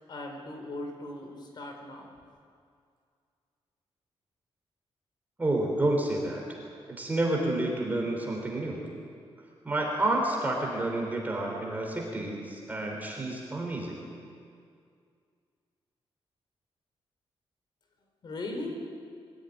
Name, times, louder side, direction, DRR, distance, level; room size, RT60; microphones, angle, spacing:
voice 1, 0.1-2.1 18.2-18.7, left 2 dB, 50° left, 3 dB, 4.3 m, -38 dB
voice 2, 5.4-6.6 6.9-8.8 9.6-14.1, right 2 dB, 15° right, -1 dB, 3.7 m, -29 dB
22.5 x 15.5 x 9.5 m, 2.2 s
wide cardioid pair, 165°, 10 cm